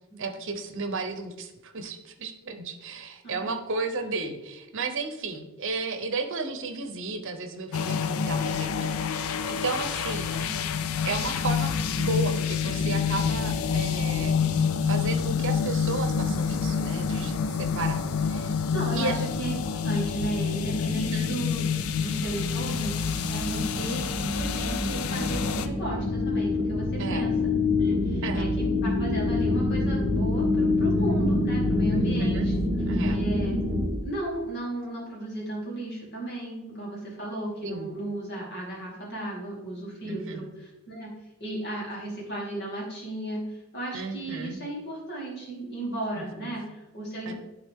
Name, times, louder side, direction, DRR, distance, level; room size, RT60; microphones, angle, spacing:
voice 1, 0.2-10.6 11.0-18.5 18.9-19.2 20.9-21.3 23.5-23.9 27.0-27.3 28.2-28.5 31.9-32.5 32.9-33.2 37.6-37.9 40.0-40.4 43.9-44.6 46.1-46.5 47.3-47.4, right 3 dB, 60° right, 7 dB, 0.8 m, -34 dB
sound 1, 7.7-25.7, left 6 dB, 75° left, 0.4 m, -28 dB
voice 2, 10.4-10.7 18.7-21.6 22.0-27.5 27.8-32.5 33.0-33.6 33.9-41.1 41.4-47.3, right 2 dB, 50° left, -3 dB, 2.5 m, -35 dB
sound 2, 21.8-33.9, left 2 dB, ahead, 2.5 m, -26 dB
10.5 x 3.9 x 3.6 m, 0.99 s
head